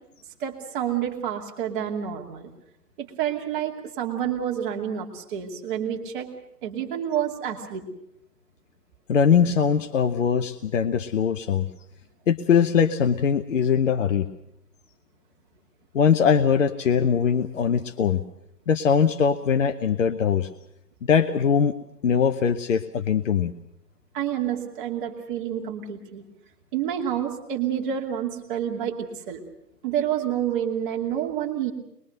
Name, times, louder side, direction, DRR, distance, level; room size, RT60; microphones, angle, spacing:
voice 1, 0.4-2.5 3.0-6.3 6.6-7.9 24.1-26.2 26.7-29.4 29.8-31.7, right 9 dB, 30° right, 2 dB, 2.6 m, -28 dB
voice 2, 9.1-11.7 12.3-14.3 15.9-18.2 18.7-20.5 21.0-21.7 22.0-23.5, left 7 dB, 50° left, 10 dB, 1.0 m, -21 dB
23.5 x 22.0 x 6.6 m, 0.82 s
figure-of-eight pair, 140°, 49 cm